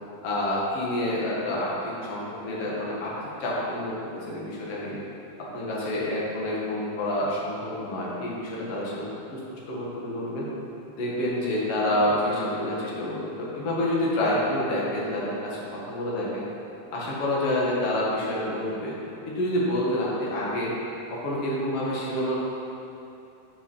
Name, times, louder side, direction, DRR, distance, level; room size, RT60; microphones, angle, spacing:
voice 1, 0.2-3.1 3.4-5.0 5.5-10.5 11.0-16.5 16.9-19.0 19.4-20.7 21.1-22.4, left 1 dB, 50° left, -5 dB, 2.2 m, -28 dB
7.4 x 6.1 x 5.5 m, 2.8 s
omnidirectional pair, 3.9 m